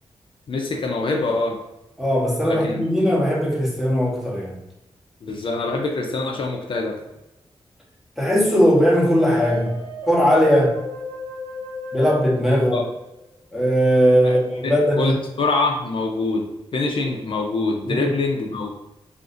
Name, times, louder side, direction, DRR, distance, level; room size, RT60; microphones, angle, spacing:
voice 1, 0.5-1.6 2.4-2.8 5.2-7.0 12.7-12.8 14.2-14.4 14.6-18.7, left 3 dB, 55° left, 1 dB, 0.5 m, -24 dB
voice 2, 2.0-4.5 8.2-9.8 10.1-10.7 11.9-12.8 13.5-15.1 17.9-18.1, equal, ahead, -4 dB, 0.8 m, -19 dB
sound 1, 8.7-13.5, left 2 dB, 70° right, 0.9 m, -34 dB
2.5 x 2.4 x 3.7 m, 0.93 s
wide cardioid pair, 135°, 10 cm